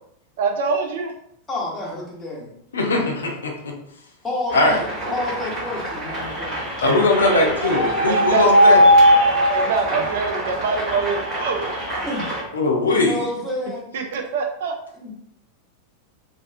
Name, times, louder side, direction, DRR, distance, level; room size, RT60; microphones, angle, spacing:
voice 1, 0.4-1.1 7.2-7.6 8.1-8.8 9.5-11.7 12.4-12.5 13.9-14.7, right 4 dB, 55° right, 2 dB, 0.4 m, -24 dB
voice 2, 1.5-2.5 4.2-4.7 5.1-6.6 9.9-10.0 12.0-12.3 12.9-13.8 15.0-15.1, left 2 dB, 15° left, -4 dB, 0.9 m, -29 dB
voice 3, 2.7-3.8 4.5-4.8 6.8-8.8 12.5-13.2, left 2 dB, 70° left, 1 dB, 0.5 m, -20 dB
sound 1, 4.5-12.4, equal, 30° right, 1.2 m, -20 dB
2.3 x 2.3 x 2.4 m, 0.72 s
figure-of-eight pair, 90°, 0 cm